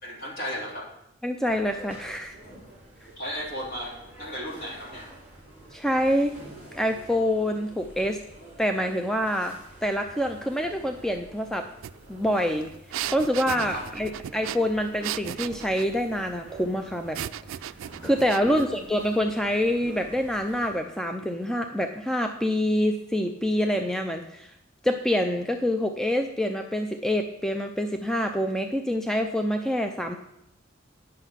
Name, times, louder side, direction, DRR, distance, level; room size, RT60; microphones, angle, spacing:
voice 1, 0.0-0.9 3.2-5.1 13.7-13.8 18.5-18.6, equal, 50° left, -3 dB, 3.1 m, -34 dB
voice 2, 1.2-2.4 5.7-6.3 6.7-8.2 8.6-11.7 12.1-12.7 13.1-17.2 18.0-24.5 24.8-30.2, equal, 5° left, 5 dB, 0.4 m, -26 dB
sound 1, 1.4-20.8, right 2 dB, 30° left, 3.7 m, -47 dB
sound 2, 11.8-11.9 12.2-15.9 17.1-18.7, right 11 dB, 85° right, 0.3 m, -35 dB
10.0 x 6.5 x 5.7 m, 0.80 s
head